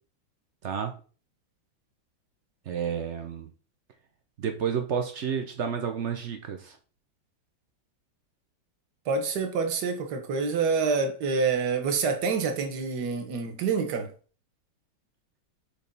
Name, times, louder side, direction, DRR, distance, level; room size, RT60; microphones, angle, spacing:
voice 1, 0.6-0.9 2.7-3.5 4.4-6.8, right 7 dB, 80° right, 0.6 m, -30 dB
voice 2, 9.0-14.1, right 5 dB, 55° right, 1.6 m, -27 dB
5.1 x 4.2 x 5.3 m
omnidirectional pair, 2.3 m